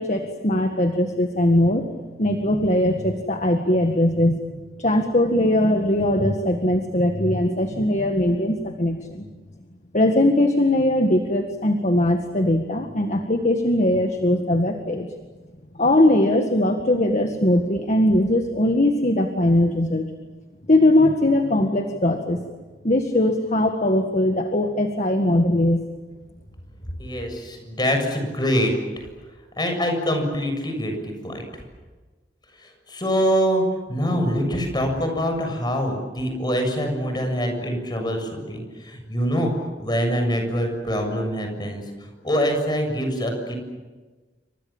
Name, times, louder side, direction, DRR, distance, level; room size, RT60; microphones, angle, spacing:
voice 1, 0.0-1.9 2.2-4.4 4.8-9.2 9.9-15.1 15.8-20.1 20.7-22.4 22.8-25.8, left 1 dB, 40° left, 5 dB, 1.9 m, -20 dB
voice 2, 27.0-28.7 29.6-31.6 32.6-39.5 39.8-41.8 42.2-43.6, equal, 25° left, 4 dB, 7.1 m, -24 dB
29.0 x 25.0 x 7.3 m, 1.3 s
head